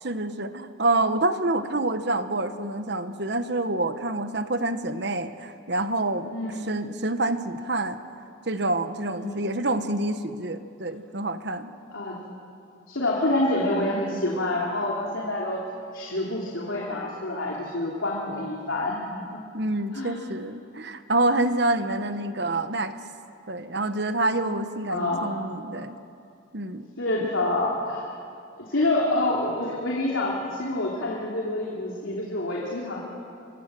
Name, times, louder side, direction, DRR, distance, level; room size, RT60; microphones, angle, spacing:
voice 1, 0.0-6.3 6.7-8.0 8.5-11.7 19.5-23.0 23.5-26.0 26.5-26.9, right 2 dB, 55° right, 10 dB, 1.2 m, -27 dB
voice 2, 6.3-6.6 9.1-9.4 11.9-12.2 12.9-19.4 19.9-20.1 24.9-25.3 27.0-28.1 28.6-33.0, left 2 dB, 85° left, -3 dB, 3.1 m, -27 dB
25.0 x 22.5 x 7.7 m, 2.5 s
head